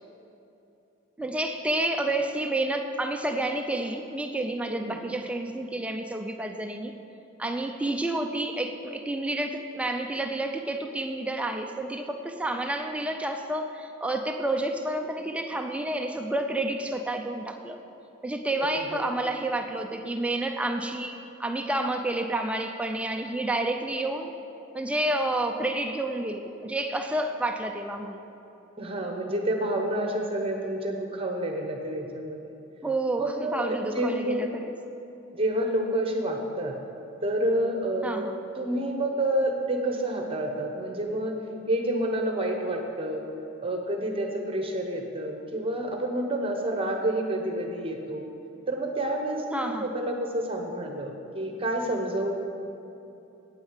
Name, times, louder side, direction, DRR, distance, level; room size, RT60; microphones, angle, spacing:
voice 1, 1.2-6.9 7.4-17.8 18.2-24.3 24.7-28.2 32.8-34.7 38.0-38.4 49.5-49.9, right 1 dB, 5° right, 4 dB, 0.5 m, -29 dB
voice 2, 18.6-19.1 28.8-32.4 33.2-34.5 35.3-36.8 37.2-38.3 38.5-41.3 41.7-43.2 43.6-48.3 48.7-52.4, right 1 dB, 30° right, 2 dB, 1.0 m, -29 dB
9.1 x 8.9 x 7.3 m, 2.9 s
head